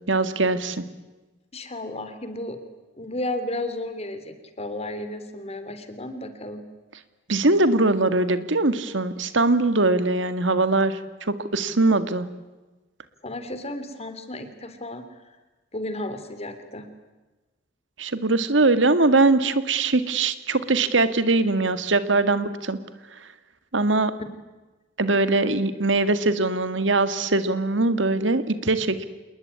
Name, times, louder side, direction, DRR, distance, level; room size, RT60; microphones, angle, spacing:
voice 1, 0.1-0.9 7.3-11.0 11.5-12.3 18.0-22.8 23.7-24.1 25.0-29.1, right 2 dB, 80° right, 12 dB, 1.9 m, -21 dB
voice 2, 1.5-2.6 3.0-6.6 13.2-15.0 15.7-16.9, left 1 dB, 35° left, 10 dB, 3.1 m, -33 dB
27.5 x 20.5 x 9.7 m, 1.2 s
head